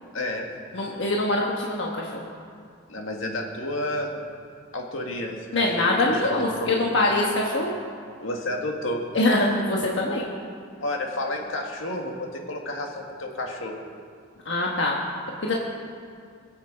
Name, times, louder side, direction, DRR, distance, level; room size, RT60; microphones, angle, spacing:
voice 1, 0.1-0.5 2.9-4.2 4.7-6.7 8.2-9.1 10.8-13.8, left 1 dB, 85° left, 1 dB, 1.9 m, -31 dB
voice 2, 0.7-2.2 5.5-7.7 9.1-10.3 14.4-15.0 15.4-15.5, left 2 dB, 65° left, -2 dB, 1.3 m, -23 dB
22.0 x 8.3 x 5.1 m, 2.2 s
head